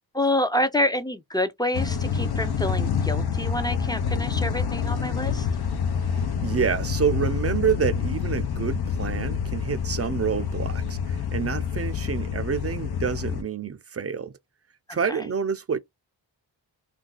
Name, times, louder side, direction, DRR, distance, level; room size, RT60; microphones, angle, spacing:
voice 1, 0.1-5.5 15.1-15.2, left 1 dB, 10° left, 0.6 m, -27 dB
sound 1, 1.7-13.4, left 6 dB, 55° left, 0.8 m, -27 dB
voice 2, 6.1-14.3 14.9-15.8, right 6 dB, 35° right, 0.5 m, -28 dB
2.6 x 2.3 x 3.8 m
cardioid pair, 55°, 45 cm